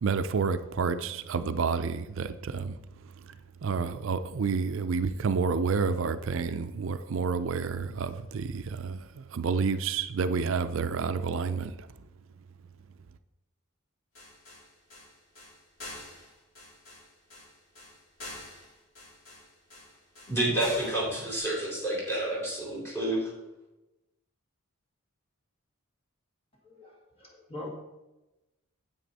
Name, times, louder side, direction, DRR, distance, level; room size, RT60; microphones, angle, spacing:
voice 1, 0.0-2.7 3.6-11.7, right 5 dB, 60° right, 0.4 m, -29 dB
sound 1, 14.1-21.4, left 1 dB, 85° left, 4.1 m, -46 dB
voice 2, 20.3-23.3, right 1 dB, 10° left, 3.8 m, -29 dB
voice 3, 26.6-27.7, left 2 dB, 25° left, 1.9 m, -43 dB
9.4 x 8.4 x 4.1 m
head